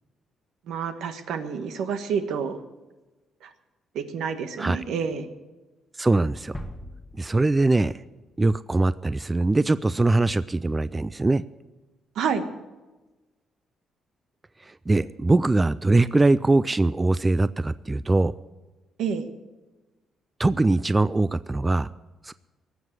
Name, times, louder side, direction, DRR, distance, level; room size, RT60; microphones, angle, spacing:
voice 1, 0.7-2.6 3.4-3.5 3.9-5.3 12.1-12.4 19.0-19.3, right 6 dB, 80° right, 8 dB, 1.3 m, -28 dB
voice 2, 6.0-6.5 7.2-7.9 8.4-11.4 14.9-18.3 20.4-21.9 22.2-22.3, right 2 dB, 20° right, 16 dB, 0.4 m, -22 dB
sound 1, 6.5-8.4, left 1 dB, 15° left, 1.3 m, -41 dB
18.5 x 7.5 x 8.0 m, 1.2 s
cardioid pair, 90°, 0 cm